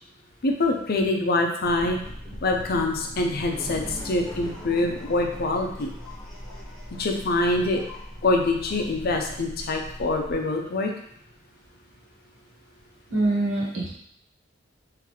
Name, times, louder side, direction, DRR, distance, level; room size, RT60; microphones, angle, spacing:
voice 1, 0.4-2.0 2.4-5.9 7.0-7.8 8.2-10.9, left 2 dB, 55° left, 2 dB, 0.6 m, -25 dB
sound 1, 1.6-10.3, equal, 5° left, 0.9 m, -39 dB
voice 2, 13.1-13.9, right 2 dB, 75° right, -5 dB, 1.3 m, -24 dB
3.8 x 3.2 x 3.1 m, 0.68 s
head